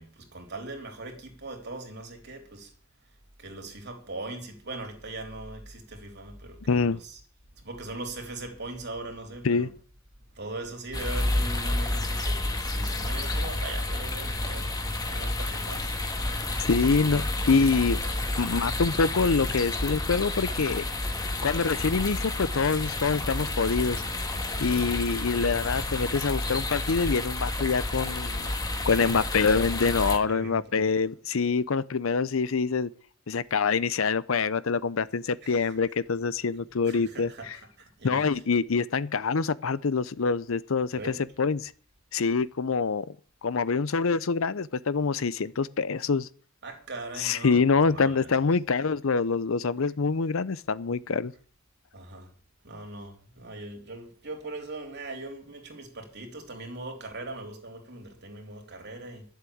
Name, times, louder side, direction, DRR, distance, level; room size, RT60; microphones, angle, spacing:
voice 1, 0.0-2.7 3.4-7.2 7.6-9.7 10.3-14.7 15.0-16.0 16.8-17.7 18.0-18.2 24.6-25.0 28.9-29.2 29.4-29.7 30.2-30.9 35.4-35.8 36.8-38.2 40.9-41.2 46.6-48.3 51.9-52.3 52.6-59.3, right 2 dB, 55° right, 3.6 m, -40 dB
voice 2, 6.7-7.0 9.4-9.7 16.6-18.0 18.4-20.8 21.4-24.0 24.6-28.5 28.9-32.9 33.3-37.6 38.0-41.7 42.1-43.2 43.4-46.3 47.2-51.3, left 4 dB, 70° left, 0.6 m, -25 dB
sound 1, 10.9-30.2, left 2 dB, 20° left, 1.6 m, -30 dB
12.0 x 7.6 x 8.6 m
head